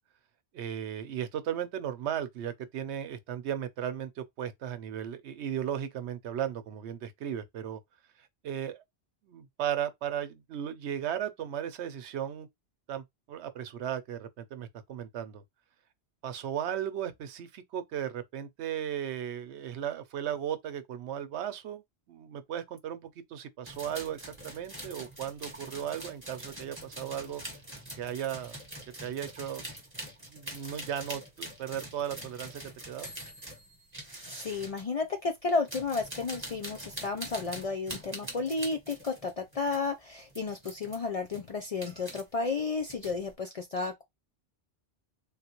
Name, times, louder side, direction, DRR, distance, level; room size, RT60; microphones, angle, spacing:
voice 1, 0.5-7.8 8.4-8.8 9.2-12.5 12.9-15.4 16.2-21.8 22.1-27.4 28.0-28.6 29.0-29.6 30.3-33.1, right 10 dB, 85° right, 0.9 m, -36 dB
sound 1, 23.6-34.9 35.5-39.9 40.3-41.0 41.3-42.2 42.6-43.3, right 1 dB, 10° right, 1.2 m, -44 dB
voice 2, 34.3-44.0, left 4 dB, 50° left, 0.4 m, -32 dB
3.5 x 2.3 x 2.9 m
omnidirectional pair, 1.1 m